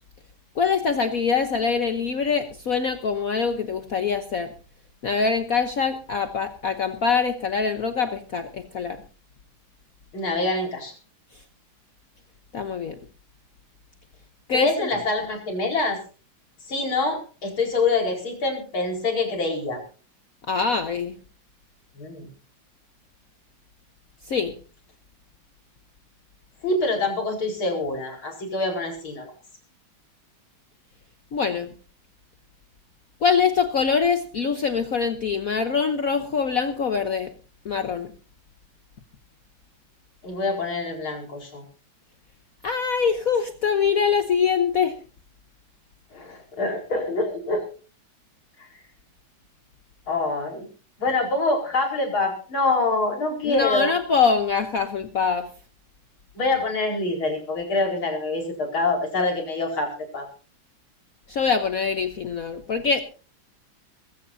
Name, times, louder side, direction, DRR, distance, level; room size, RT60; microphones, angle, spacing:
voice 1, 0.6-4.5 5.0-9.0 12.5-13.0 14.5-14.9 20.5-21.1 24.3-24.5 31.3-31.7 33.2-37.3 37.6-38.1 42.6-45.0 53.4-55.5 61.3-63.0, left 6 dB, 50° left, 8 dB, 1.2 m, -24 dB
voice 2, 10.1-10.9 14.5-16.0 16.7-19.8 22.0-22.3 26.6-29.3 40.2-41.6 46.1-47.6 48.6-48.7 50.1-50.6 51.0-53.9 56.4-60.3, left 3 dB, 90° left, 2 dB, 5.4 m, -25 dB
21.0 x 15.5 x 2.7 m, 0.36 s
omnidirectional pair, 2.2 m